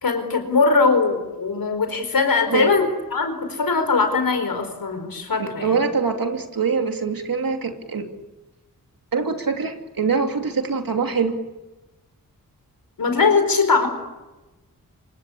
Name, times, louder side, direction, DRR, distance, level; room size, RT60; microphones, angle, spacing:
voice 1, 0.0-5.8 13.0-13.9, left 4 dB, 85° left, 7 dB, 4.6 m, -21 dB
voice 2, 5.4-8.1 9.1-11.3, right 5 dB, 80° right, 4 dB, 2.9 m, -24 dB
26.0 x 25.0 x 8.6 m, 1.1 s
wide cardioid pair, 80°, 34 cm